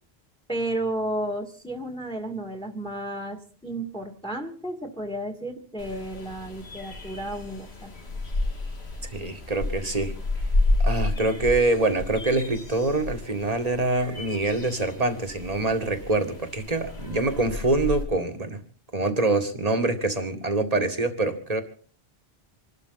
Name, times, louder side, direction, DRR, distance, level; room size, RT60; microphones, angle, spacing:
voice 1, 0.5-7.9, right 1 dB, 5° left, 5 dB, 2.0 m, -32 dB
sound 1, 5.8-18.0, left 2 dB, 90° left, 2.7 m, -31 dB
voice 2, 9.1-10.1 10.8-18.6 18.9-21.6, right 2 dB, 40° right, 6 dB, 2.0 m, -25 dB
27.0 x 12.5 x 4.0 m, 0.42 s
omnidirectional pair, 1.0 m